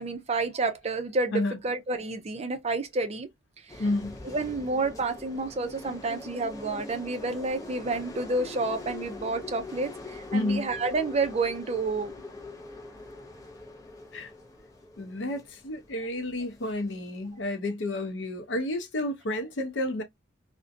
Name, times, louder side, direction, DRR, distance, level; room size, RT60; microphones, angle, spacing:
voice 1, 0.0-3.3 3.8-3.9 4.2-12.1, right 3 dB, 35° right, 0.5 m, -30 dB
sound 1, 3.7-17.3, left 2 dB, 20° left, 0.6 m, -43 dB
voice 2, 3.8-4.2 10.3-10.7 14.1-14.3 15.0-20.0, left 1 dB, 70° left, 0.6 m, -30 dB
2.5 x 2.1 x 2.5 m
head